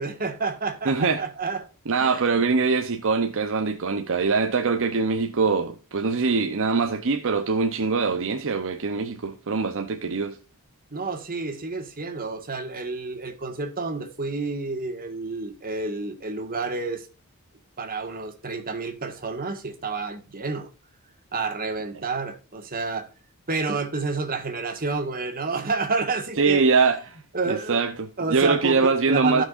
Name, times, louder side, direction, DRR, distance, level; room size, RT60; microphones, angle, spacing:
voice 1, 0.0-1.7 2.0-2.2 10.9-17.1 17.8-20.7 21.3-23.1 23.5-26.6 27.3-27.8 28.2-29.4, right 4 dB, 40° right, 1.8 m, -29 dB
voice 2, 0.8-1.2 1.9-10.4 26.4-27.2 27.5-29.4, right 4 dB, 60° right, 0.7 m, -23 dB
15.0 x 6.0 x 2.5 m
head